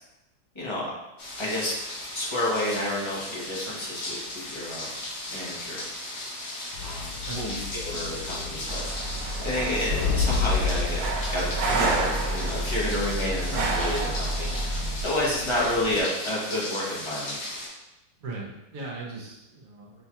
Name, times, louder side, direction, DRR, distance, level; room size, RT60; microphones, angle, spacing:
voice 1, 0.5-0.9 1.4-1.8 2.1-4.9 5.3-5.8 6.8-9.1 9.4-11.0 11.3-17.4, left 1 dB, 50° left, -5 dB, 0.3 m, -30 dB
sound 1, 1.2-17.7, left 1 dB, 65° left, 1.6 m, -36 dB
sound 2, 6.7-16.0, left 6 dB, 85° left, 1.3 m, -33 dB
voice 2, 7.1-7.4 18.2-20.0, right 3 dB, 60° right, -3 dB, 1.1 m, -38 dB
sound 3, 8.7-15.0, right 2 dB, 85° right, 1.2 m, -29 dB
6.2 x 2.3 x 2.8 m, 0.95 s
omnidirectional pair, 1.8 m